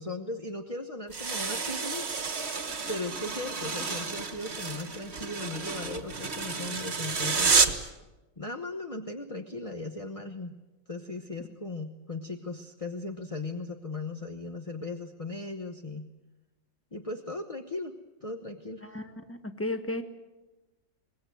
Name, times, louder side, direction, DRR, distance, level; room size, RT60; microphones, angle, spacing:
voice 1, 0.0-2.1 2.9-7.7 8.4-10.6 10.9-16.1 16.9-17.9 18.2-18.8, left 2 dB, 25° left, 5 dB, 0.8 m, -37 dB
sound 1, 1.1-7.9, right 5 dB, 35° right, 1.6 m, -30 dB
voice 2, 18.8-20.0, left 1 dB, 10° left, 8 dB, 1.4 m, -34 dB
23.5 x 20.5 x 9.4 m, 1.1 s
omnidirectional pair, 2.1 m